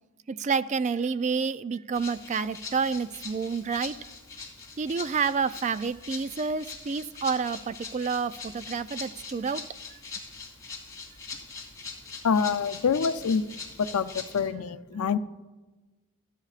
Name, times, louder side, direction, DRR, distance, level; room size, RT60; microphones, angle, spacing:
voice 1, 0.3-3.9 4.8-9.6, right 5 dB, 35° right, 14 dB, 0.3 m, -29 dB
Rattle (instrument), 1.9-14.5, left 4 dB, 15° left, 3.2 m, -42 dB
voice 2, 12.2-13.5 13.8-15.2, left 6 dB, 85° left, 12 dB, 0.5 m, -26 dB
29.0 x 10.0 x 2.5 m, 1.2 s
head